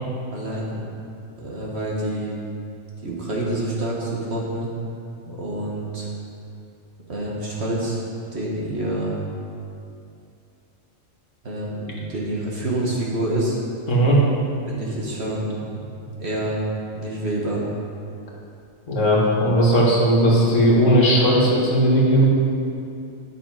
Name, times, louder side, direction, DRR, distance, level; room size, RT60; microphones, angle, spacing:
voice 1, 0.3-0.8 1.4-2.4 3.0-4.7 5.3-6.1 7.1-8.0 8.3-9.1 11.4-13.6 14.7-15.9 16.2-16.6 16.9-17.6, right 1 dB, 55° right, -4 dB, 1.8 m, -27 dB
voice 2, 13.9-14.2 18.9-22.2, equal, 70° left, -4 dB, 2.0 m, -17 dB
10.5 x 6.4 x 4.9 m, 2.6 s
omnidirectional pair, 1.4 m